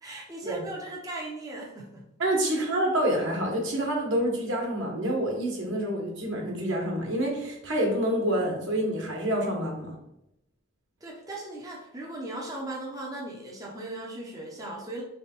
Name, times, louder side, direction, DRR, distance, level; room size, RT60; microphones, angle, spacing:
voice 1, 0.0-2.0 2.5-2.6 11.0-15.0, right 2 dB, 15° right, -3 dB, 0.6 m, -38 dB
voice 2, 2.2-9.9, right 1 dB, 65° right, 0 dB, 1.2 m, -27 dB
3.3 x 3.3 x 4.3 m, 0.83 s
head